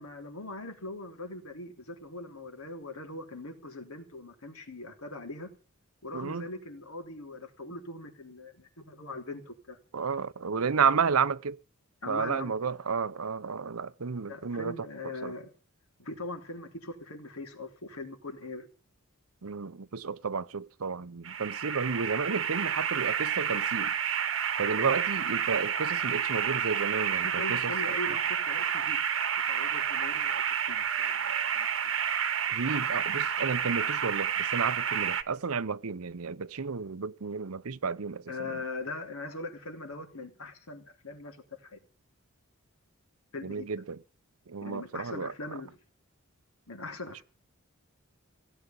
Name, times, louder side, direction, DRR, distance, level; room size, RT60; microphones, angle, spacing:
voice 1, 0.0-5.5 6.0-9.8 12.0-12.5 14.3-15.5 16.0-18.7 27.2-29.0 29.5-31.7 38.3-41.8 43.3-43.7 44.6-45.7 46.7-47.2, left 2 dB, 80° left, 3.3 m, -41 dB
voice 2, 6.1-6.5 9.9-11.6 12.1-14.7 15.2-15.3 19.4-23.9 24.6-27.7 32.5-38.2 38.5-38.6 43.4-44.0 44.5-45.3, right 5 dB, 80° right, 0.8 m, -32 dB
sound 1, 21.2-35.2, right 8 dB, 60° right, 1.2 m, -30 dB
17.0 x 8.2 x 9.0 m
head